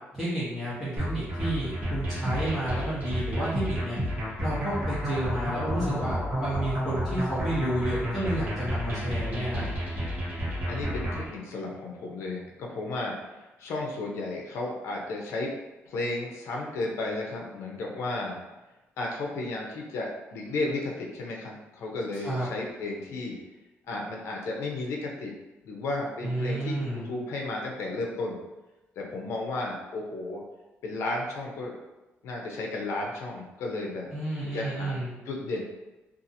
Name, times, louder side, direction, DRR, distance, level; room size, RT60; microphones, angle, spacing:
voice 1, 0.1-4.0 4.4-9.7 22.2-22.5 26.2-27.1 34.1-35.1, right 1 dB, ahead, -14 dB, 1.0 m, -31 dB
sound 1, 1.0-11.3, equal, 40° right, 1.0 m, -31 dB
voice 2, 5.8-6.2 10.7-15.5 15.9-18.4 19.0-23.4 23.9-25.3 25.6-28.4 29.0-30.4 30.8-31.8 32.2-34.1 34.5-35.0 35.3-35.6, left 2 dB, 75° left, -1 dB, 0.6 m, -33 dB
2.7 x 2.4 x 2.6 m, 1.1 s
cardioid pair, 160°, 5 cm